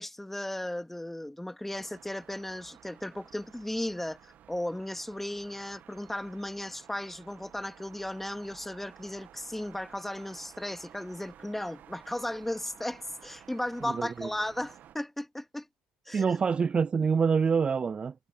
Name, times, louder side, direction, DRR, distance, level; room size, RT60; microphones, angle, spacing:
voice 1, 0.0-4.2 4.5-15.7 16.1-16.4, left 1 dB, 5° left, 2.5 m, -36 dB
sound 1, 1.7-15.0, right 10 dB, 55° right, 1.7 m, -54 dB
voice 2, 13.9-14.3 16.1-18.1, right 6 dB, 30° right, 0.4 m, -26 dB
hypercardioid pair, 65°, 4 cm